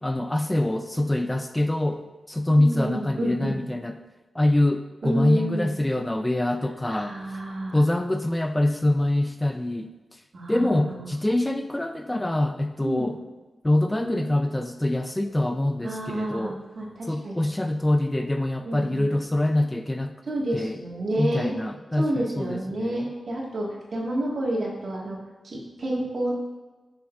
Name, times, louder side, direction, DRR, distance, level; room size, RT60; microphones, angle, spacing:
voice 1, 0.0-4.0 4.3-7.4 7.7-10.2 10.5-13.2 13.6-16.6 17.1-20.2 20.5-20.8 21.2-23.1, left 1 dB, 10° left, 7 dB, 0.3 m, -25 dB
voice 2, 2.5-3.6 5.0-5.7 6.8-7.8 10.3-11.1 12.8-13.1 14.0-14.2 15.8-17.4 18.7-19.0 20.3-21.5 22.0-25.2 25.4-26.3, right 1 dB, 55° right, -3 dB, 2.1 m, -29 dB
10.5 x 7.0 x 2.7 m, 1.2 s
wide cardioid pair, 145°, 0 cm